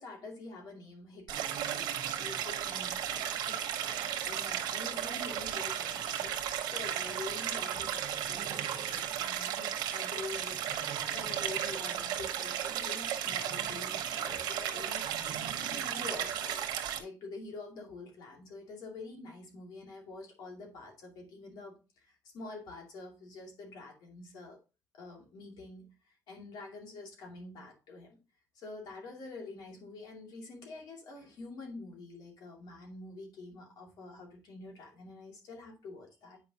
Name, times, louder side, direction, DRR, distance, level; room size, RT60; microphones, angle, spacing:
voice 1, 0.0-1.4 1.7-10.6 11.1-16.7 17.0-24.6 24.9-28.2 28.5-36.4, left 3 dB, 70° left, 0 dB, 2.4 m, -47 dB
Stream, 1.3-17.0, right 10 dB, 90° right, 1.1 m, -35 dB
8.5 x 5.0 x 2.8 m, 0.30 s
cardioid pair, 135°, 7 cm